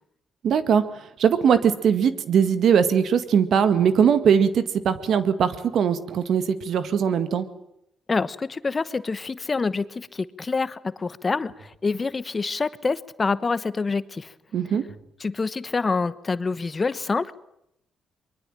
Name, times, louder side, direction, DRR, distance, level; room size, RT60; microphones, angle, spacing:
voice 1, 0.4-0.8 1.2-7.4 14.5-14.8, right 7 dB, 65° right, 11 dB, 2.0 m, -20 dB
voice 2, 8.1-14.3 15.2-17.4, left 4 dB, 30° left, 15 dB, 1.1 m, -26 dB
24.0 x 23.0 x 9.0 m, 0.78 s
cardioid pair, 90°, 0 cm